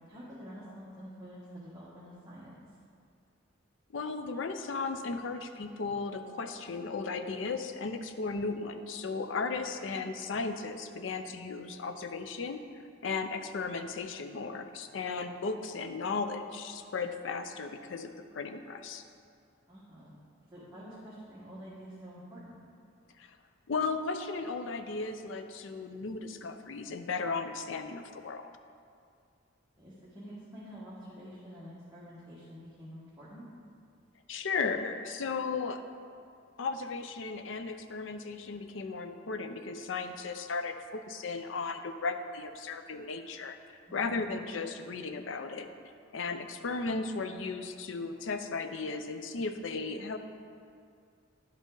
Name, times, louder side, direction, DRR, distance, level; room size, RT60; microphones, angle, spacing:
voice 1, 0.0-2.6 9.9-10.0 19.7-20.2 20.5-22.6 29.8-33.4 43.9-44.2 46.5-46.7, equal, 20° right, -9 dB, 1.3 m, -48 dB
voice 2, 3.9-12.6 13.0-19.0 23.2-23.4 23.7-28.5 34.3-35.8 36.6-43.6 43.9-45.7 46.1-50.2, left 4 dB, 75° left, 8 dB, 0.5 m, -35 dB
11.0 x 5.2 x 3.8 m, 2.3 s
head